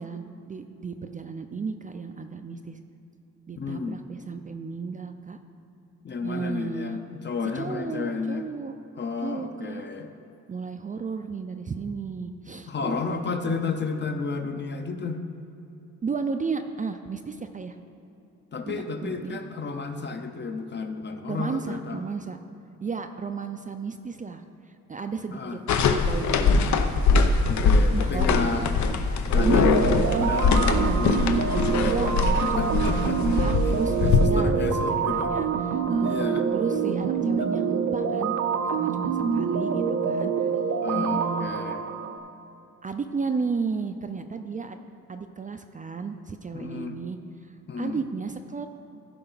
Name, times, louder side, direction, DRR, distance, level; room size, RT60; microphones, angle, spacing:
voice 1, 0.0-2.8 3.5-5.4 6.2-7.0 7.5-8.7 9.2-9.8 10.5-13.6 16.0-17.8 18.7-19.4 21.3-22.4 22.8-24.4 24.9-27.0 27.9-28.8 29.4-30.3 30.7-30.9 31.8-36.2 36.5-38.4 38.7-40.5 40.9-41.5 42.8-44.8 45.1-47.2 47.8-48.7, right 5 dB, 25° right, 7 dB, 0.4 m, -33 dB
voice 2, 3.6-4.0 6.0-8.4 9.0-10.1 12.7-15.2 18.5-22.1 25.3-25.6 27.5-28.7 29.3-31.9 32.4-33.2 34.0-35.3 36.0-36.4 40.8-41.8 46.5-47.0 47.7-48.0, left 4 dB, 35° left, 7 dB, 0.7 m, -31 dB
sound 1, 25.7-34.3, left 4 dB, 75° left, 0.7 m, -22 dB
sound 2, 29.3-42.2, right 6 dB, 80° right, 0.7 m, -26 dB
15.0 x 5.7 x 3.9 m, 2.9 s
cardioid pair, 120°, 29 cm